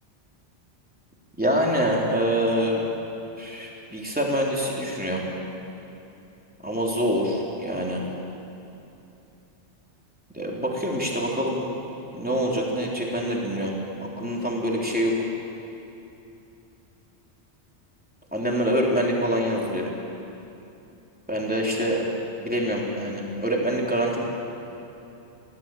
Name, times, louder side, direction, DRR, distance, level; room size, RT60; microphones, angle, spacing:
voice 1, 1.4-2.8 3.4-5.2 6.6-8.0 10.3-11.7 12.1-13.7 14.0-15.3 18.3-19.9 21.3-22.1 22.4-24.2, equal, 10° right, -3 dB, 3.5 m, -25 dB
20.5 x 17.0 x 9.2 m, 2.9 s
omnidirectional pair, 1.2 m